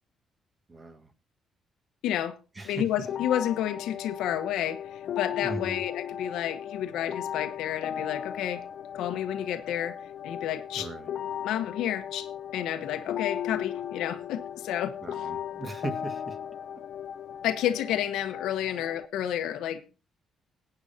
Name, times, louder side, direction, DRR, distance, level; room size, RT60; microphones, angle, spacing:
voice 1, 0.7-1.1 2.6-2.9 5.4-5.8 10.8-11.1 15.0-16.4, right 2 dB, 30° right, 1.8 m, -38 dB
voice 2, 2.0-2.4 2.6-8.6 8.9-9.9 10.2-10.9 11.4-15.0 17.4-19.8, left 11 dB, 85° left, 1.1 m, -30 dB
sound 1, 3.1-19.1, left 9 dB, 70° left, 0.5 m, -37 dB
20.0 x 8.9 x 2.8 m
cardioid pair, 90°, 0 cm